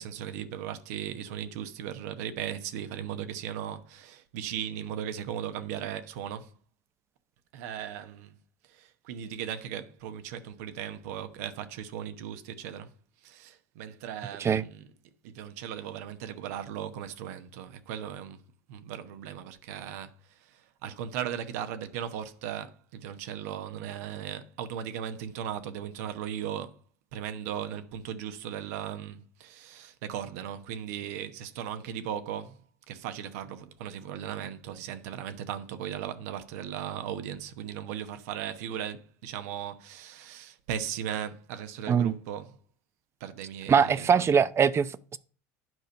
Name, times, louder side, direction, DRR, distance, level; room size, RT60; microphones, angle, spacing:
voice 1, 0.0-6.5 7.5-8.3 8.7-12.9 13.2-14.9 15.2-18.4 18.7-20.1 20.4-26.8 27.1-32.6 32.9-42.6 43.2-44.4, right 9 dB, 70° right, 1.0 m, -37 dB
voice 2, 43.7-45.2, right 7 dB, 30° right, 0.6 m, -23 dB
9.4 x 5.1 x 5.4 m
hypercardioid pair, 80°, 9 cm